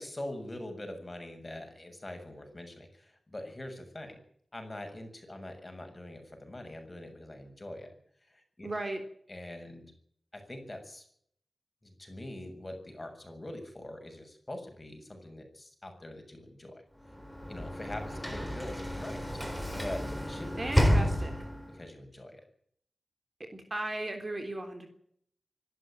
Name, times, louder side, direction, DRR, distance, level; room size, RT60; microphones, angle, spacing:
voice 1, 0.0-4.2 4.5-8.0 8.3-8.7 9.3-9.9 10.3-11.0 11.8-16.8 17.5-19.2 19.7-20.5 21.7-22.4, left 1 dB, 20° left, 5 dB, 7.1 m, -43 dB
voice 2, 8.6-9.0 20.6-21.3 23.5-24.9, right 2 dB, 30° right, 5 dB, 3.5 m, -36 dB
Sliding door / Slam, 17.1-21.8, equal, ahead, 3.9 m, -30 dB
25.0 x 12.5 x 9.2 m, 0.66 s
wide cardioid pair, 115°, 0 cm